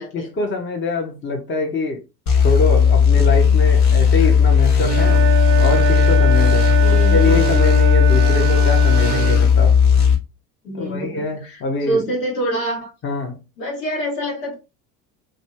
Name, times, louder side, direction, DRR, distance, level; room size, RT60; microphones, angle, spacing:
voice 1, 0.1-2.0 2.4-5.2 5.6-6.8 7.1-9.8 10.7-12.0 13.0-13.4, left 3 dB, 25° left, 0.9 m, -24 dB
sound 1, 2.3-10.1, left 7 dB, 55° left, 1.1 m, -15 dB
Wind instrument woodwind instrument, 4.8-9.5, right 9 dB, 25° right, 0.6 m, -24 dB
voice 2, 6.8-7.3 8.3-8.6 10.6-12.9 13.6-14.5, right 1 dB, 75° left, 1.5 m, -26 dB
2.6 x 2.6 x 3.2 m
hypercardioid pair, 70°, 49 cm